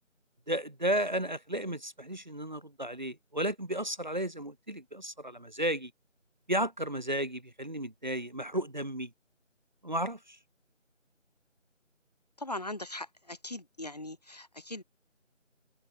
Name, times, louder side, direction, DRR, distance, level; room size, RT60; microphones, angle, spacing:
voice 1, 0.5-5.9 6.5-9.1 9.8-10.4, right 1 dB, 35° right, 2.4 m, -33 dB
voice 2, 12.4-14.8, left 1 dB, 30° left, 4.6 m, -40 dB
figure-of-eight pair, 170°, 39 cm